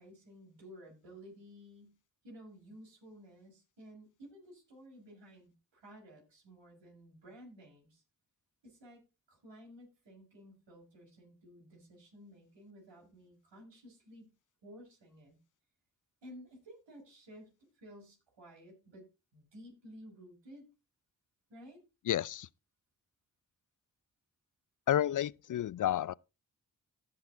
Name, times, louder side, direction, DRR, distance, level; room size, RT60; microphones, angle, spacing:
voice 1, 0.0-2.0 2.2-8.0 8.6-9.0 9.3-14.3 14.6-15.4 16.2-20.7 21.5-21.8, equal, 75° right, 5.9 m, -54 dB
voice 2, 22.1-22.5 24.9-26.1, left 11 dB, 45° left, 0.4 m, -31 dB
16.0 x 5.9 x 3.8 m
supercardioid pair, 40°, 43 cm